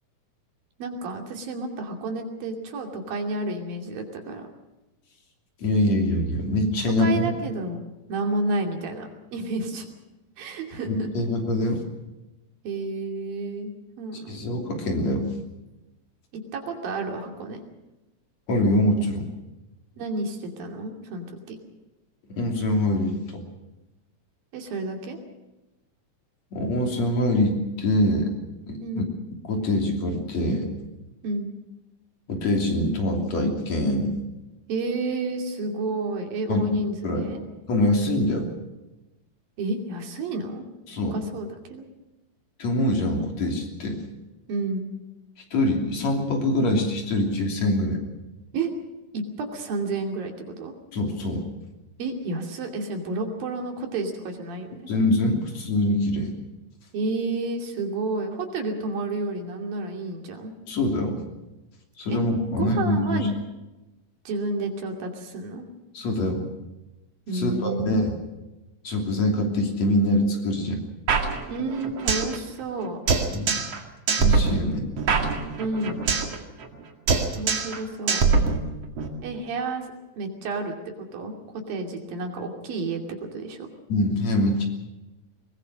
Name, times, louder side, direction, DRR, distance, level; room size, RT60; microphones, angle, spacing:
voice 1, 0.8-4.5 7.0-7.8 8.1-9.9 10.4-11.1 12.6-13.7 14.0-14.4 16.3-17.6 20.0-21.6 24.5-25.2 28.8-29.1 31.2-31.5 34.7-37.4 39.6-40.6 41.1-41.8 44.5-44.9 48.5-48.7 49.1-50.7 52.0-54.9 56.9-60.5 62.1-62.2 62.5-63.3 64.3-65.7 67.3-68.0 71.5-73.0 75.6-76.0 77.3-78.3 79.2-79.9 80.2-83.0 83.3-83.7, right 3 dB, 90° right, 3 dB, 4.5 m, -30 dB
voice 2, 5.6-7.3 10.9-11.8 14.3-15.3 18.5-19.3 22.3-23.4 26.5-28.3 28.7-29.0 29.5-30.7 32.3-34.1 36.5-36.7 37.0-37.3 37.7-38.5 40.9-41.2 42.6-44.0 45.5-48.0 50.9-51.4 54.9-56.3 60.7-61.2 62.0-63.3 65.9-66.5 67.3-68.1 68.8-70.8 73.3-73.5 74.1-74.9 83.9-84.7, left 1 dB, 50° left, 2 dB, 4.2 m, -24 dB
sound 1, 71.1-72.4 72.6-72.7 73.1-73.8 74.1-76.4 76.6-76.8 77.1-77.8 78.1-79.1, right 5 dB, 50° right, 2.9 m, -23 dB
22.0 x 20.5 x 6.4 m, 1.0 s
omnidirectional pair, 4.0 m